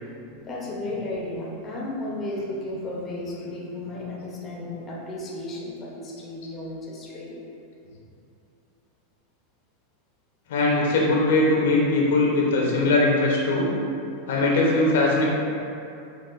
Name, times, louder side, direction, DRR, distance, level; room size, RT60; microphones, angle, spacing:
voice 1, 0.0-7.4, left 1 dB, 20° left, -4 dB, 0.8 m, -34 dB
voice 2, 10.5-13.7 14.3-15.3, left 2 dB, 80° left, -3 dB, 0.8 m, -20 dB
5.8 x 2.5 x 2.5 m, 2.7 s
supercardioid pair, 140°, 0 cm